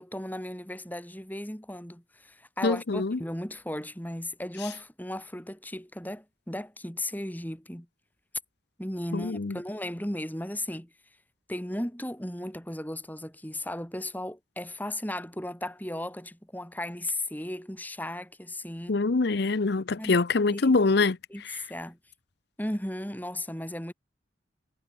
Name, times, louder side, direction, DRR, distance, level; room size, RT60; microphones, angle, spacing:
voice 1, 0.0-7.9 8.8-10.9 11.5-19.0 20.0-20.2 20.5-20.8 21.3-22.0 22.6-23.9, left 1 dB, 10° left, 5.6 m, -36 dB
voice 2, 2.6-3.2 9.1-9.6 18.9-21.2 21.4-21.6, left 3 dB, 60° left, 0.7 m, -24 dB
head